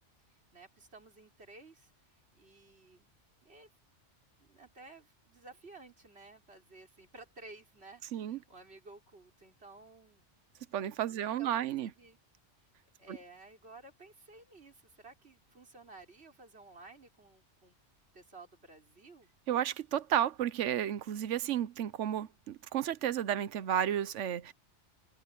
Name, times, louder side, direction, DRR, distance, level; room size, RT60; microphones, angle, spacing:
voice 1, 0.3-3.1 3.4-3.7 4.4-10.2 11.1-12.2 13.0-17.8 18.1-19.3, right 3 dB, 60° right, 4.5 m, -55 dB
voice 2, 10.7-11.9 13.1-13.2 19.5-24.5, right 10 dB, 85° right, 1.1 m, -32 dB
omnidirectional pair, 1.2 m